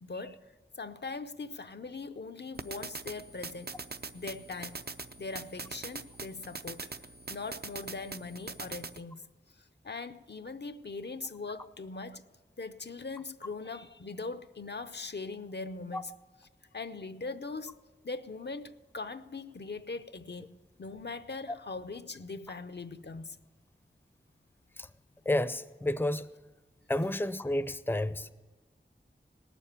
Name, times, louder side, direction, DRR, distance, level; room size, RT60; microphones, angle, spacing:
voice 1, 0.0-3.7 4.1-4.8 5.2-6.9 7.3-9.2 9.8-12.3 12.6-16.1 16.7-17.7 18.0-23.4, left 3 dB, 60° left, 0.6 m, -41 dB
sound 1, 2.5-9.0, right 4 dB, 55° right, 0.5 m, -43 dB
voice 2, 25.3-26.3 26.9-28.3, left 1 dB, 10° left, 0.5 m, -30 dB
19.0 x 7.0 x 8.5 m
wide cardioid pair, 50°, 19 cm